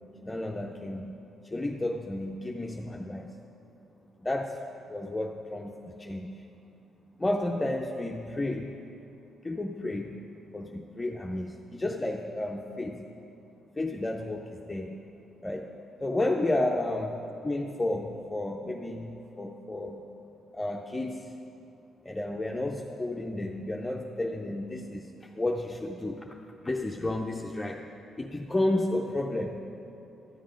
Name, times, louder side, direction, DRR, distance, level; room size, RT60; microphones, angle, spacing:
voice 1, 0.2-1.2 1.4-3.3 4.2-4.6 4.9-6.4 7.2-8.7 9.4-10.2 10.5-13.0 13.8-15.0 15.4-15.7 16.0-17.1 17.4-20.0 20.5-21.3 22.0-26.4 26.6-27.8 28.2-29.6, left 1 dB, 15° left, 1 dB, 0.6 m, -32 dB
12.5 x 7.5 x 5.1 m, 2.8 s
cardioid pair, 90°, 0 cm